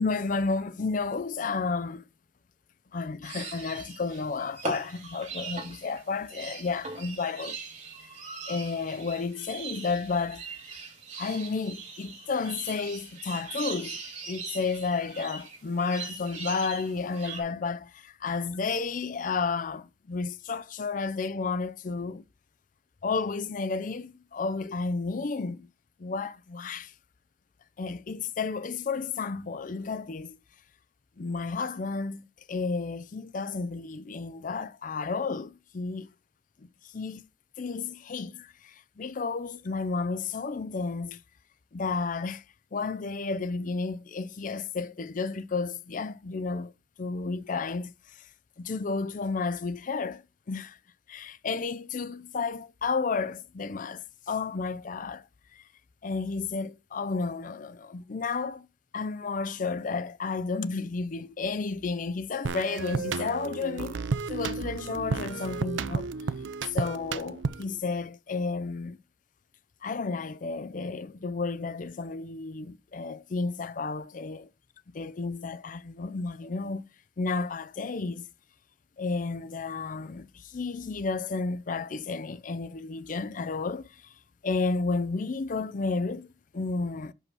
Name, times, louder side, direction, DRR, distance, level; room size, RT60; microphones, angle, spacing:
voice 1, 0.0-2.0 2.9-7.6 8.0-8.2 8.5-10.5 11.2-14.0 14.3-22.2 23.0-25.7 26.0-26.9 27.8-30.4 31.2-36.1 36.6-37.2 37.6-41.2 41.7-42.4 42.7-46.7 47.0-48.3 48.6-50.8 51.1-55.3 55.5-55.6 56.0-58.7 58.9-64.0 64.3-66.1 66.7-69.0 69.8-74.5 74.9-76.9 77.2-78.3 79.0-84.1 84.4-87.1, left 4 dB, 45° left, 0.5 m, -32 dB
sound 1, 3.2-17.4, right 4 dB, 40° right, 3.0 m, -41 dB
sound 2, 62.4-67.8, right 4 dB, 85° right, 0.5 m, -32 dB
5.6 x 5.4 x 6.1 m
head